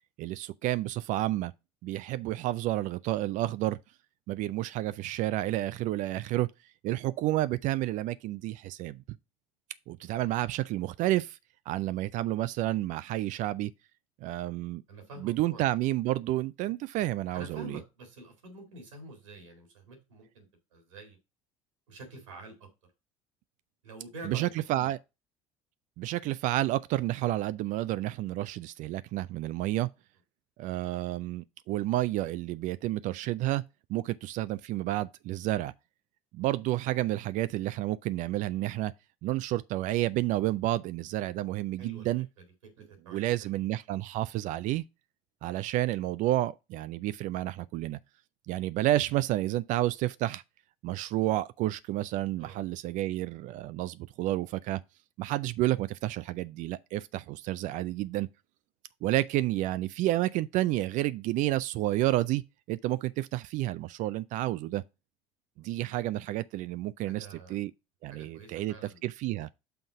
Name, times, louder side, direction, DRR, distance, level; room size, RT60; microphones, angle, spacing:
voice 1, 0.2-1.5 1.8-3.8 4.3-6.5 6.8-9.0 9.9-11.4 11.7-13.7 14.2-14.8 15.2-17.8 24.2-25.0 26.0-29.9 30.6-33.6 33.9-35.7 36.3-38.9 39.2-42.3 43.1-44.8 45.4-48.0 48.5-50.4 50.8-54.8 55.2-58.3 59.0-62.4 62.7-64.8 65.6-67.7 68.0-68.7 69.0-69.5, right 15 dB, 55° right, 0.4 m, -30 dB
voice 2, 14.9-15.7 17.3-20.5 20.7-21.2 21.9-22.7 23.8-24.9 41.8-42.1 42.6-43.5 52.4-52.6 65.6-65.7 67.1-67.6 68.1-69.0, right 2 dB, 85° right, 2.1 m, -47 dB
5.8 x 3.8 x 5.9 m
hypercardioid pair, 65°, 16 cm